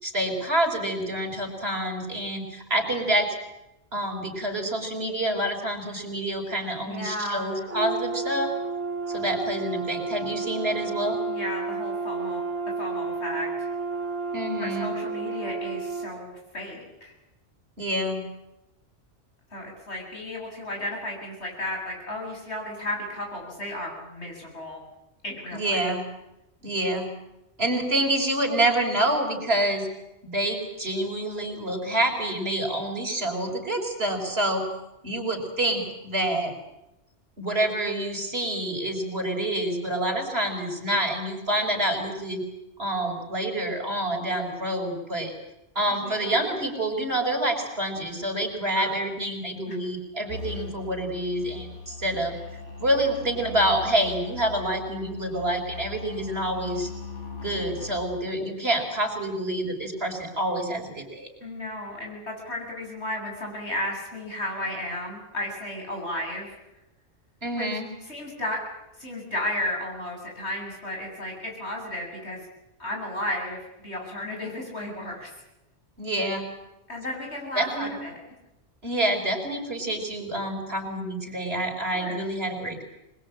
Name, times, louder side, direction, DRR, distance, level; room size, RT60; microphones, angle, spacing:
voice 1, 0.0-3.3 3.9-8.5 9.1-11.2 14.3-14.9 17.8-18.2 25.5-26.1 26.6-27.1 27.6-29.9 30.2-34.6 35.0-36.5 37.4-42.4 42.8-45.3 45.8-52.4 52.8-56.9 57.4-61.3 67.4-67.9 76.0-76.5 77.6-77.9 78.8-82.8, right 1 dB, 60° right, 3 dB, 5.3 m, -27 dB
voice 2, 6.7-7.6 11.3-12.4 12.8-13.7 14.6-17.1 19.5-24.8 25.2-25.9 45.9-46.5 48.8-48.9 49.7-49.8 61.4-66.5 67.5-67.7 68.1-68.6 69.0-72.4 72.8-75.3 76.9-78.2 81.9-82.2, left 1 dB, 65° left, 0 dB, 8.2 m, -34 dB
Brass instrument, 7.7-16.1, right 4 dB, 10° right, 2.7 m, -31 dB
sound 1, 50.3-58.0, left 4 dB, 90° left, 5.1 m, -39 dB
25.5 x 21.5 x 8.7 m, 0.93 s
omnidirectional pair, 1.2 m